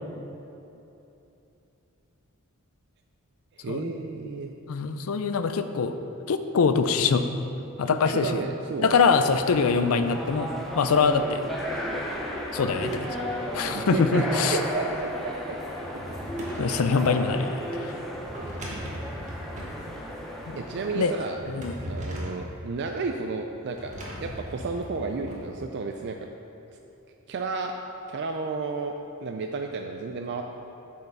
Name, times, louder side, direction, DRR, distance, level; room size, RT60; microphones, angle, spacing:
voice 1, 3.6-4.5 7.8-9.0 13.6-15.6 20.6-21.4 21.8-23.9 24.2-26.2 27.3-27.7 28.1-30.4, right 4 dB, 50° right, 4 dB, 0.4 m, -32 dB
voice 2, 4.7-5.9 6.3-7.3 7.8-8.4 8.8-11.4 12.5-13.1 13.5-14.6 16.6-17.6 20.5-20.6 20.9-21.1 21.5-21.8, left 5 dB, 70° left, 9 dB, 0.4 m, -23 dB
sound 1, 9.2-21.4, equal, ahead, 0.8 m, -34 dB
Drawer open or close, 15.8-17.0 18.1-19.8 21.1-22.4 23.7-25.4, equal, 35° right, 1.3 m, -38 dB
7.8 x 4.7 x 5.5 m, 2.9 s
head